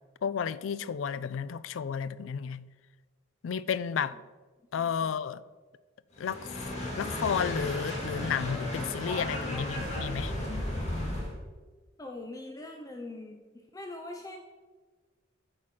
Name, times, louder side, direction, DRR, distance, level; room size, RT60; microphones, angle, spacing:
voice 1, 0.2-2.7 3.4-4.2 4.7-5.4 6.2-10.3, left 7 dB, 80° left, 0.4 m, -32 dB
voice 2, 4.8-5.2 12.0-13.4 13.7-14.4, left 2 dB, 20° left, 0.6 m, -42 dB
sound 1, 6.2-11.3, left 1 dB, 40° left, 2.1 m, -34 dB
8.6 x 4.9 x 5.9 m
head